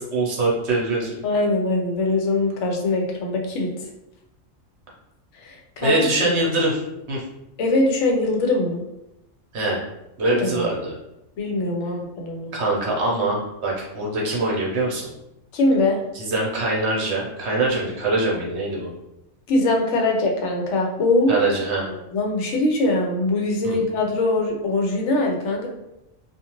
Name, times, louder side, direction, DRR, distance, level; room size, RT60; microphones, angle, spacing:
voice 1, 0.0-1.2 5.8-6.8 7.1-7.2 9.5-9.8 10.2-10.9 12.5-15.1 16.1-18.9 21.3-21.9 23.6-23.8, right 2 dB, 60° right, -3 dB, 1.0 m, -23 dB
voice 2, 1.2-3.7 5.4-6.4 7.6-8.8 10.2-10.7 11.4-12.5 15.5-16.0 19.5-21.4 22.1-25.7, left 2 dB, 70° left, 0 dB, 0.9 m, -22 dB
2.5 x 2.4 x 2.9 m, 0.88 s
omnidirectional pair, 1.4 m